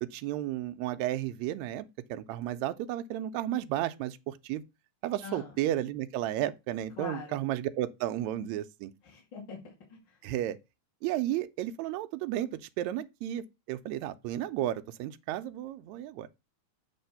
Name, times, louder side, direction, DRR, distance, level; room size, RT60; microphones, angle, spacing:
voice 1, 0.0-4.6 5.0-8.9 10.2-10.6 11.0-16.3, right 13 dB, 80° right, 1.8 m, -33 dB
voice 2, 5.2-5.5 7.0-7.4 9.0-10.2, left 4 dB, 40° left, 2.4 m, -43 dB
8.0 x 3.4 x 5.6 m
omnidirectional pair, 3.5 m